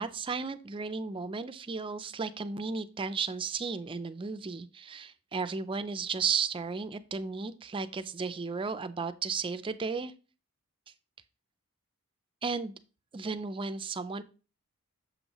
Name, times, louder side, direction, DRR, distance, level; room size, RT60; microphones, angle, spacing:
voice 1, 0.0-10.1 12.4-12.7 13.1-14.2, right 5 dB, 25° right, 11 dB, 0.4 m, -34 dB
7.0 x 5.4 x 3.0 m, 0.36 s
head